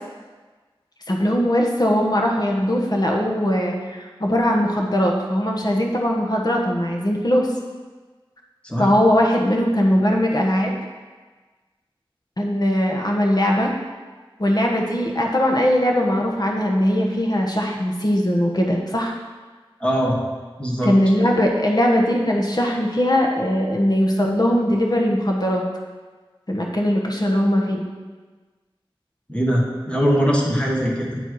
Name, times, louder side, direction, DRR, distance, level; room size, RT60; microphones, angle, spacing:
voice 1, 1.1-7.5 8.8-10.7 12.4-13.7 14.4-19.1 20.8-25.6 26.5-27.8, equal, 45° left, 0 dB, 1.2 m, -20 dB
voice 2, 19.8-20.2 20.6-20.9 29.3-31.2, equal, 10° left, -3 dB, 1.5 m, -21 dB
9.0 x 4.3 x 4.8 m, 1.4 s
wide cardioid pair, 50°, 10 cm